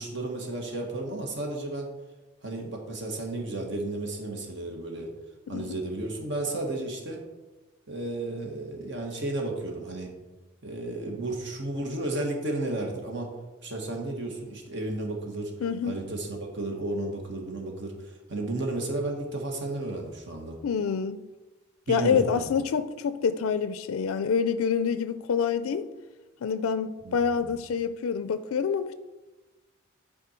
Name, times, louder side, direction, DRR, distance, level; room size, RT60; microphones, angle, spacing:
voice 1, 0.0-1.9 2.4-5.1 5.5-7.2 7.9-10.1 10.6-13.3 13.6-15.5 15.8-20.6 21.9-22.5 27.0-27.5, right 2 dB, 60° right, 1.6 m, -33 dB
voice 2, 5.5-5.8 15.6-16.0 20.6-21.2 21.9-25.9 26.4-28.9, left 6 dB, 85° left, 0.4 m, -27 dB
10.5 x 4.4 x 4.4 m
head